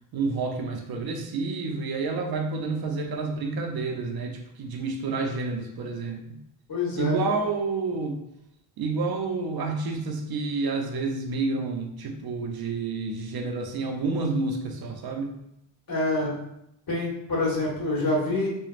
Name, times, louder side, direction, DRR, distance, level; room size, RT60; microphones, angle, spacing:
voice 1, 0.1-6.4 7.0-8.2 8.8-15.4, right 3 dB, 55° right, 4 dB, 0.6 m, -29 dB
voice 2, 6.7-7.1 15.9-16.3 16.9-18.5, left 2 dB, 50° left, -5 dB, 1.4 m, -26 dB
3.2 x 2.3 x 2.4 m, 0.81 s
cardioid pair, 80°, 45 cm